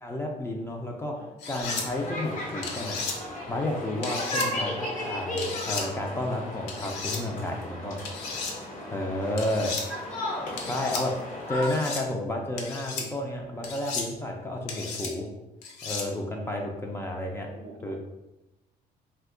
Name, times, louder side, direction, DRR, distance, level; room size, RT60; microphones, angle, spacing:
voice 1, 0.0-1.1 1.5-3.0 3.5-8.0 8.9-9.7 10.6-11.1 11.5-15.3 15.8-17.5 17.8-18.0, left 1 dB, 15° left, 0 dB, 0.4 m, -31 dB
sound 1, 1.4-1.9 2.6-3.2 4.0-4.5 5.4-5.9 6.7-7.2 8.1-8.5 9.4-9.8 10.6-11.0 11.6-12.0 12.6-13.1 13.6-14.1 14.7-15.1 15.6-16.1, left 4 dB, 85° left, 0.6 m, -34 dB
sound 2, 1.6-11.7, left 1 dB, 50° left, 0.8 m, -35 dB
voice 2, 8.8-9.5 16.3-16.7 17.5-18.0, right 3 dB, 65° right, 3 dB, 0.6 m, -48 dB
2.6 x 2.2 x 3.6 m, 0.98 s
cardioid pair, 110°, 17 cm